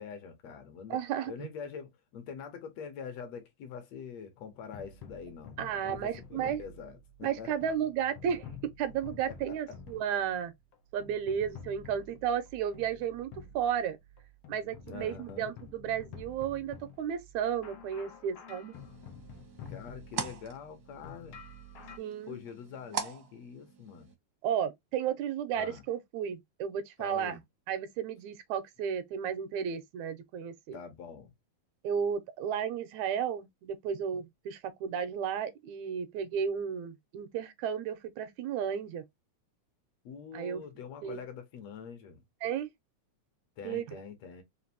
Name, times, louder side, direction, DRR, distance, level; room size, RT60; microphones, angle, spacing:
voice 1, 0.0-1.0 1.3-7.5 9.3-9.6 14.9-15.5 19.7-21.4 22.3-24.1 25.6-25.8 27.0-27.4 30.7-31.3 40.1-42.2 43.6-44.4, left 6 dB, 70° left, 1.9 m, -44 dB
voice 2, 0.9-1.3 5.6-6.6 7.2-8.4 8.8-10.5 10.9-13.3 13.5-14.0 14.5-18.8 22.0-22.4 24.4-27.4 27.7-30.8 31.8-39.0 40.3-40.6 41.0-41.2 42.4-42.7 43.6-44.0, right 8 dB, 85° right, 1.9 m, -33 dB
sound 1, 4.4-22.0, left 4 dB, 85° left, 1.1 m, -50 dB
sound 2, 18.7-24.1, right 7 dB, 65° right, 1.0 m, -43 dB
5.1 x 2.6 x 2.7 m
omnidirectional pair, 3.4 m